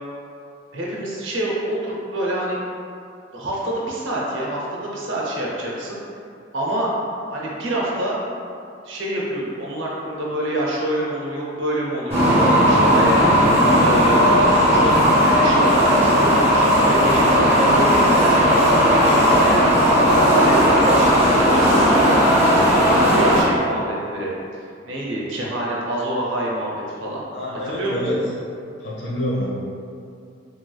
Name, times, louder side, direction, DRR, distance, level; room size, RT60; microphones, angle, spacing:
voice 1, 0.7-2.6 3.3-6.0 6.5-6.9 7.3-8.2 8.8-12.4 12.7-15.0 15.4-19.8 20.1-24.3 24.8-27.2 27.6-28.0, right 1 dB, 80° right, -4 dB, 0.7 m, -26 dB
sound 1, 12.1-23.4, equal, 15° right, 1.0 m, -16 dB
voice 2, 27.3-28.2 28.8-29.5, left 1 dB, 75° left, -6 dB, 0.8 m, -26 dB
3.0 x 3.0 x 2.3 m, 2.4 s
head